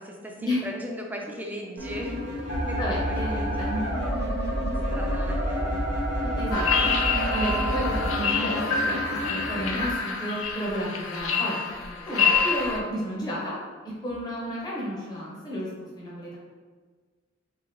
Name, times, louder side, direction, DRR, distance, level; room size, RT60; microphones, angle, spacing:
voice 1, 0.0-2.2 2.6-2.8 3.1-3.8 4.9-5.9 11.9-12.3, equal, 10° right, 0 dB, 0.4 m, -38 dB
sound 1, 1.8-9.9, left 1 dB, 60° right, 0.6 m, -34 dB
sound 2, 2.5-8.1, right 1 dB, 70° left, 1.1 m, -29 dB
voice 2, 2.8-3.8 6.2-6.9 7.3-9.0 9.3-11.6 12.1-13.5 14.0-15.7 16.0-16.4, equal, 20° left, -6 dB, 0.9 m, -31 dB
sound 3, 6.5-12.8, left 5 dB, 90° left, 0.5 m, -26 dB
3.7 x 3.0 x 3.1 m, 1.5 s
head